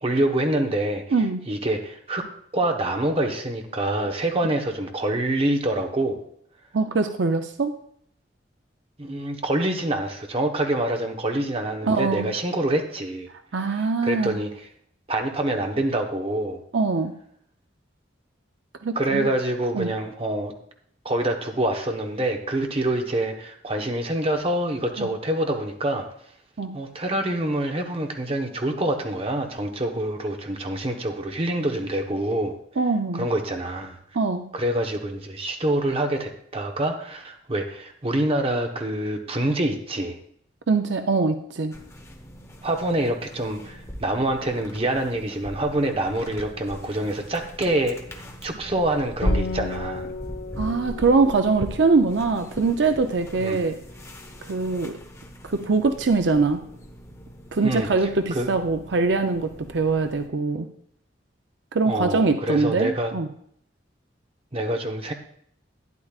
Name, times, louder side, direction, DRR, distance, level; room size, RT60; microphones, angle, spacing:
voice 1, 0.0-1.0 1.5-2.2 2.5-6.2 9.0-13.3 14.0-14.7 15.1-16.6 18.9-20.5 21.0-26.1 26.7-32.5 33.1-34.0 34.5-40.2 42.6-50.1 53.4-53.6 57.6-57.9 58.3-58.5 61.9-63.1 64.5-65.1, right 1 dB, 30° right, 4 dB, 1.0 m, -26 dB
voice 2, 6.7-7.8 11.8-12.3 13.5-14.4 16.7-17.1 18.8-19.3 19.7-19.9 25.0-25.1 26.6-26.7 32.8-33.3 34.1-34.5 40.7-41.7 50.6-53.8 54.4-54.9 55.4-56.6 57.5-60.7 61.7-63.3, right 4 dB, 70° right, 7 dB, 0.6 m, -23 dB
sound 1, 41.7-60.3, equal, 15° left, 0.9 m, -37 dB
Acoustic guitar, 49.2-52.9, left 4 dB, 65° left, 0.4 m, -36 dB
12.0 x 10.0 x 2.4 m, 0.66 s
head